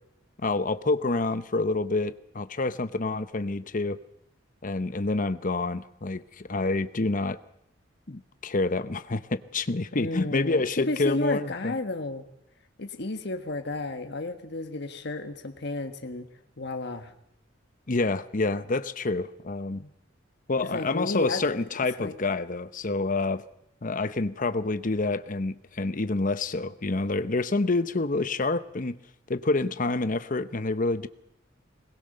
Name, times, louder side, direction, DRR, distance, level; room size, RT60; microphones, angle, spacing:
voice 1, 0.4-4.0 4.6-7.4 8.1-11.7 17.9-19.8 20.5-23.4 23.8-29.0 29.3-31.1, left 3 dB, 45° left, 13 dB, 0.8 m, -28 dB
voice 2, 9.9-12.3 12.8-16.3 16.6-17.1 19.8-19.9 20.6-21.6 22.0-22.1, left 2 dB, 60° left, 6 dB, 1.5 m, -32 dB
22.0 x 20.0 x 6.7 m, 0.79 s
head